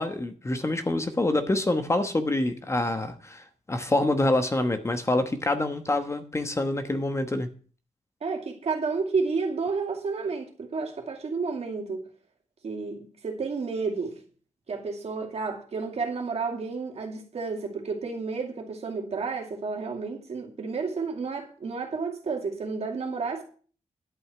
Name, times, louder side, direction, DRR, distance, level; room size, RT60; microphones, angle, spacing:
voice 1, 0.0-7.5, left 2 dB, 20° left, 1.1 m, -26 dB
voice 2, 8.2-12.0 12.6-14.2 14.7-23.4, right 4 dB, 55° right, 2.4 m, -31 dB
11.5 x 5.5 x 7.7 m
wide cardioid pair, 120°, 13 cm